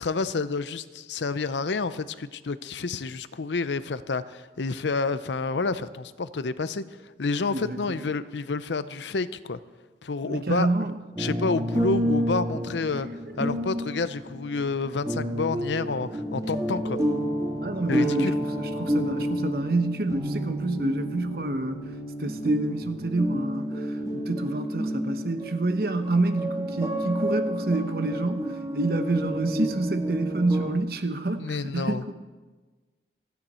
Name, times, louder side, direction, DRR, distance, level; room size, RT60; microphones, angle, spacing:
voice 1, 0.0-6.8 7.2-9.6 10.0-10.7 11.2-13.1 13.4-17.0 17.9-18.4 31.4-32.0, left 4 dB, 85° left, 14 dB, 0.6 m, -29 dB
voice 2, 7.5-8.0 10.2-10.9 17.6-21.8 22.2-32.1, right 2 dB, 55° right, 8 dB, 1.0 m, -28 dB
sound 1, 11.2-30.7, equal, 20° right, 2.1 m, -30 dB
27.5 x 9.5 x 4.4 m, 1.3 s
head